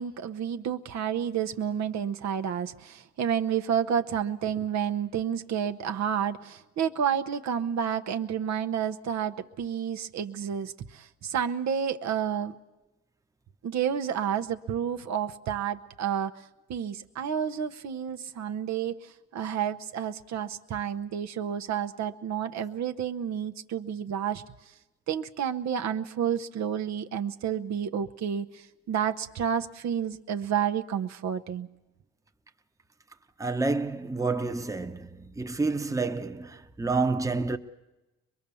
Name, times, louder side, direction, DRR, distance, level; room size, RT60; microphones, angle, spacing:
voice 1, 0.0-12.5 13.6-16.4 16.7-24.4 25.1-31.7, right 8 dB, 65° right, 1.0 m, -30 dB
voice 2, 33.4-37.6, right 3 dB, 10° right, 1.0 m, -29 dB
23.0 x 22.0 x 7.0 m
cardioid pair, 90°, 30 cm